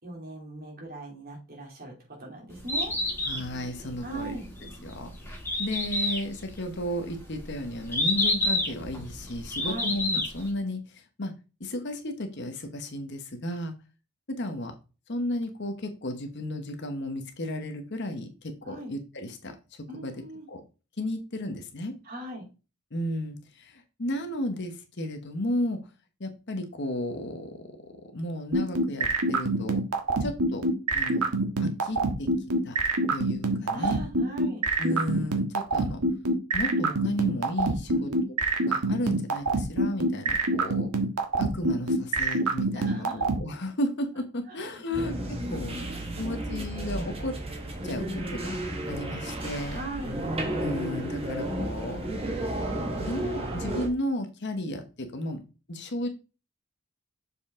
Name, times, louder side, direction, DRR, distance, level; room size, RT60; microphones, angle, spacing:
voice 1, 0.0-2.9 4.0-4.4 9.6-9.9 18.6-18.9 19.9-20.5 22.0-22.5 33.7-34.6 37.9-38.2 42.7-43.2 44.5-44.6 44.9-45.0 45.6-46.7 49.7-50.2, right 2 dB, 40° right, -1 dB, 2.9 m, -39 dB
Bird, 2.5-10.5, left 2 dB, 10° left, 2.3 m, -30 dB
voice 2, 3.3-4.4 4.8-5.1 5.6-11.3 11.6-13.7 14.4-14.7 15.1-20.1 20.5-20.6 21.0-21.9 22.9-25.8 26.2-29.8 30.2-30.6 30.9-31.3 31.6-32.3 32.6-32.8 33.1-34.0 34.8-36.0 36.5-38.1 38.7-40.9 41.4-45.1 45.5-45.8 46.2-47.3 47.8-48.1 48.3-49.9 50.6-52.0 53.0-55.4 55.7-56.1, left 1 dB, 50° left, 6 dB, 1.1 m, -33 dB
sound 1, 28.5-43.4, right 2 dB, 85° right, 1.3 m, -25 dB
sound 2, 44.9-53.9, right 1 dB, 25° right, 1.4 m, -32 dB
6.9 x 5.0 x 3.6 m, 0.32 s
head